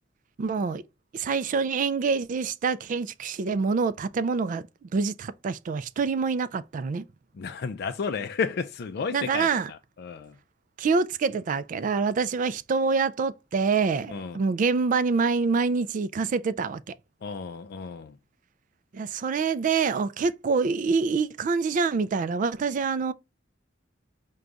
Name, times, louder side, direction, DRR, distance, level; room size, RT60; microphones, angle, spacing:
voice 1, 0.4-0.8 1.1-7.1 9.1-9.7 10.8-16.9 18.9-23.1, right 4 dB, 45° right, 0.3 m, -26 dB
voice 2, 7.4-10.4 14.1-14.4 17.2-18.2, left 5 dB, 55° left, 0.4 m, -32 dB
4.8 x 2.3 x 3.9 m
head